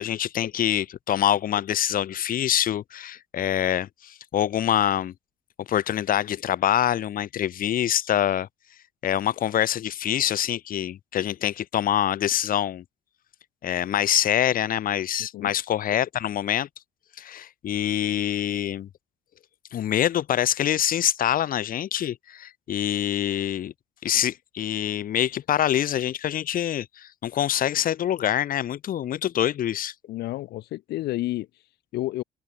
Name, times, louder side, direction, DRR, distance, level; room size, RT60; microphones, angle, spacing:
voice 1, 0.0-5.1 5.6-8.5 9.0-12.8 13.6-16.7 17.2-18.9 19.7-23.7 24.0-29.9, left 11 dB, 55° left, 2.6 m, -25 dB
voice 2, 30.1-32.2, left 16 dB, 75° left, 1.5 m, -31 dB
open air
cardioid pair, 110°, 17 cm